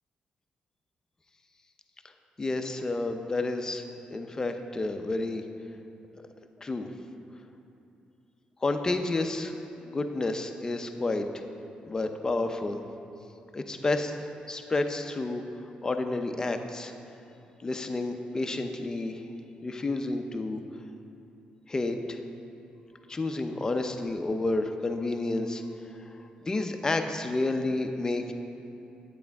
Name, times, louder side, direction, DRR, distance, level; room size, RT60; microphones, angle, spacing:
voice 1, 2.4-3.8 4.1-5.4 6.6-6.9 8.6-9.5 9.8-11.2 11.9-12.8 13.5-14.2 14.5-15.4 15.8-16.9 17.6-19.2 19.6-20.6 21.7-22.2 23.1-25.6 26.4-28.3, left 2 dB, 25° left, 6 dB, 0.6 m, -30 dB
8.5 x 8.4 x 3.5 m, 2.9 s
cardioid pair, 95°, 3 cm